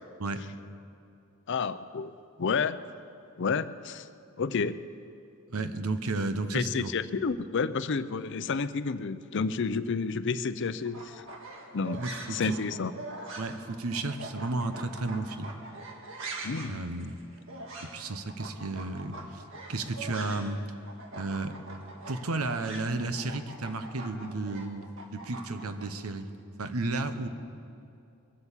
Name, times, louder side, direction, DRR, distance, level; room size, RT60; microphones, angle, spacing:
voice 1, 1.5-2.1 2.4-2.8 3.4-4.1 4.4-4.8 6.5-11.2 11.7-12.0 12.3-12.9 16.4-16.8, left 5 dB, 55° left, 13 dB, 0.5 m, -30 dB
voice 2, 5.5-6.9 12.0-12.6 13.4-15.6 16.7-17.2 17.8-19.4 19.7-20.6 21.1-21.5 22.1-26.3 26.6-27.3, right 2 dB, 90° right, 9 dB, 1.0 m, -33 dB
sound 1, 10.8-20.6 20.8-25.9, right 2 dB, 65° right, 1.8 m, -43 dB
22.0 x 8.1 x 7.4 m, 2.6 s
head